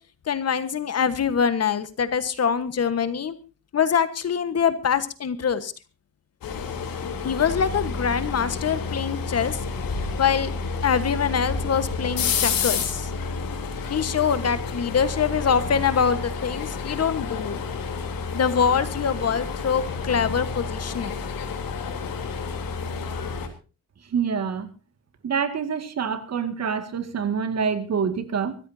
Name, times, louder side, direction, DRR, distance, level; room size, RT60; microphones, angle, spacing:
voice 1, 0.3-3.3 3.7-5.7 7.2-9.6 10.2-10.5 10.8-13.1 13.9-17.6 18.3-21.2, left 7 dB, 45° left, 12 dB, 1.4 m, -24 dB
sound 1, 6.4-23.5, left 4 dB, 75° left, 3.6 m, -30 dB
voice 2, 24.1-24.7 25.2-28.6, right 6 dB, 45° right, 9 dB, 2.1 m, -26 dB
24.0 x 15.0 x 2.8 m, 0.33 s
wide cardioid pair, 155°, 35 cm